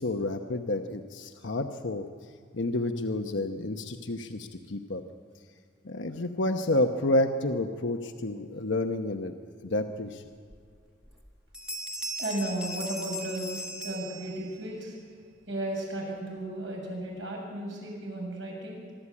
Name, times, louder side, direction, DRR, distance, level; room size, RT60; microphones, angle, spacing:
voice 1, 0.0-2.0 2.5-5.0 5.8-9.3 9.6-10.2, left 2 dB, 75° left, 5 dB, 1.0 m, -29 dB
sound 1, 10.5-10.6 11.0-11.3 11.5-14.7, right 1 dB, 5° right, 1.4 m, -38 dB
voice 2, 12.2-13.6 13.8-15.0 15.5-18.8, right 1 dB, 70° right, -2 dB, 7.7 m, -34 dB
24.0 x 13.0 x 8.5 m, 2.2 s
head